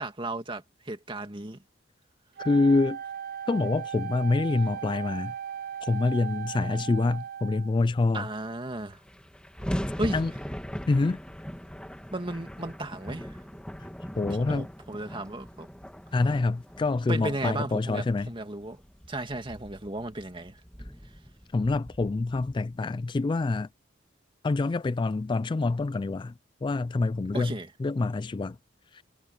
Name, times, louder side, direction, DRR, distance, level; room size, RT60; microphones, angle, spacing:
voice 1, 0.0-1.6 8.1-9.0 10.0-10.2 12.1-13.4 14.3-15.7 17.1-18.8 19.1-20.6 27.3-27.7, right 2 dB, 30° right, 2.3 m, -34 dB
voice 2, 2.4-3.0 3.5-5.3 5.8-8.2 10.1-10.3 10.9-11.2 14.2-14.7 16.1-18.3 21.5-23.7 24.4-26.3 26.6-27.5 27.8-28.6 28.9-29.0, left 3 dB, 25° left, 0.3 m, -26 dB
Wind instrument woodwind instrument, 2.4-7.8, right 8 dB, 50° right, 0.8 m, -37 dB
sound 1, 8.4-8.5 8.7-23.1, equal, 5° left, 1.9 m, -40 dB
head